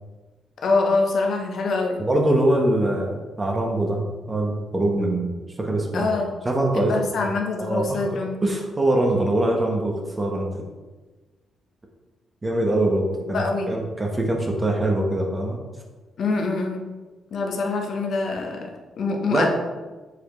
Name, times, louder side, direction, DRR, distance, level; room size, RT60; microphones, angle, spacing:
voice 1, 0.6-2.0 5.9-6.3 6.7-8.4 13.3-13.8 16.2-16.8 17.3-19.5, left 3 dB, 60° left, 2 dB, 0.9 m, -24 dB
voice 2, 2.0-4.0 4.3-6.1 6.4-7.3 7.6-8.0 8.4-10.6 12.4-15.6 19.3-19.5, right 1 dB, 20° right, 1 dB, 1.1 m, -23 dB
7.1 x 4.7 x 3.1 m, 1.2 s
cardioid pair, 120°, 0 cm